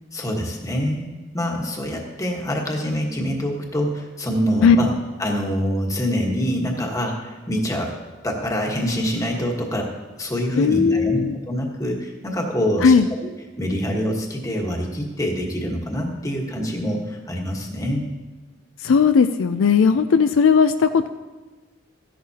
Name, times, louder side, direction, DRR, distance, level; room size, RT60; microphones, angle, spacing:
voice 1, 0.1-4.9 5.2-7.9 8.2-9.9 10.2-12.9 13.2-13.3 13.6-18.0, equal, 15° left, 0 dB, 1.3 m, -25 dB
voice 2, 10.6-11.4 12.8-13.1 18.8-21.1, left 6 dB, 70° left, 9 dB, 0.4 m, -16 dB
14.0 x 11.0 x 2.8 m, 1.3 s
head